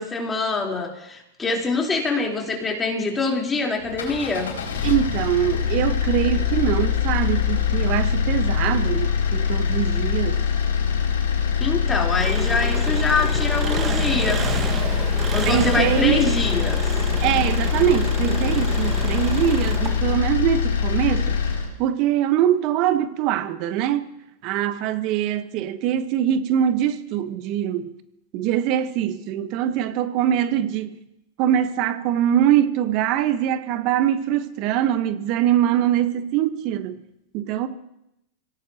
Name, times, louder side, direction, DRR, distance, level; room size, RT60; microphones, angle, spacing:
voice 1, 0.0-4.5 11.6-14.6 15.3-16.8, left 3 dB, 15° left, 3.9 m, -25 dB
sound 1, 3.8-21.7, left 7 dB, 85° left, 4.2 m, -23 dB
voice 2, 4.8-10.4 15.4-16.2 17.2-24.1 24.4-27.9 28.3-30.9 31.4-37.0 37.3-37.7, right 11 dB, 50° right, 1.2 m, -23 dB
Engine, 12.2-20.3, right 6 dB, 30° right, 1.4 m, -31 dB
26.0 x 17.0 x 3.0 m
hypercardioid pair, 105°, 0 cm